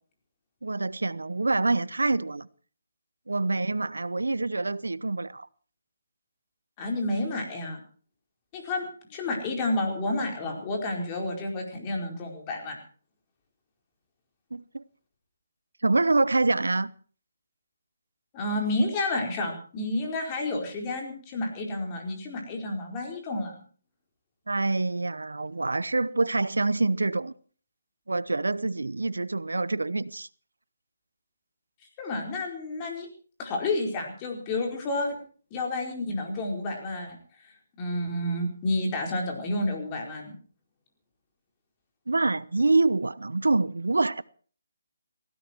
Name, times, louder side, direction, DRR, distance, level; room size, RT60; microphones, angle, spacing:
voice 1, 0.6-2.5 3.3-5.5 14.5-14.8 15.8-16.9 24.5-27.3 28.1-30.3 42.1-44.2, right 3 dB, 85° right, 0.8 m, -26 dB
voice 2, 6.8-7.8 8.5-12.8 18.3-23.6 32.0-33.1 33.4-35.2 35.5-37.2 37.4-40.4, left 2 dB, 25° left, 4.7 m, -30 dB
18.5 x 16.0 x 4.6 m
figure-of-eight pair, 155°, 0 cm